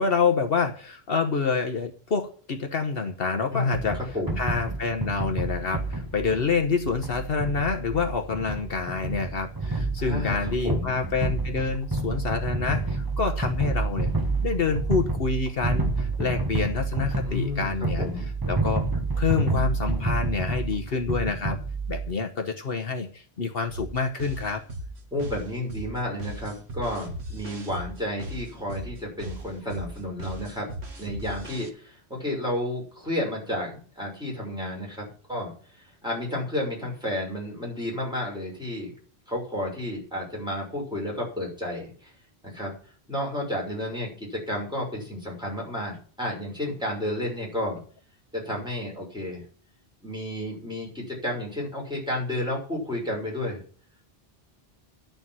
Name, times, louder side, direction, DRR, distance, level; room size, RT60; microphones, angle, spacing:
voice 1, 0.0-4.0 4.4-14.1 14.4-18.0 18.5-18.9 19.1-21.6 21.9-24.6, left 5 dB, 65° left, 5 dB, 1.3 m, -27 dB
voice 2, 3.5-3.9 4.1-4.4 10.0-11.0 17.2-17.7 18.0-18.3 25.1-30.7 31.0-38.9 39.3-42.1 42.4-42.7 43.1-47.8 48.3-49.4 50.0-53.6, left 1 dB, 5° right, -3 dB, 6.2 m, -31 dB
sound 1, 3.7-22.1, right 3 dB, 20° right, 1.5 m, -29 dB
sound 2, 23.7-31.7, right 1 dB, 85° right, 1.9 m, -38 dB
11.0 x 7.0 x 7.5 m, 0.43 s
omnidirectional pair, 1.1 m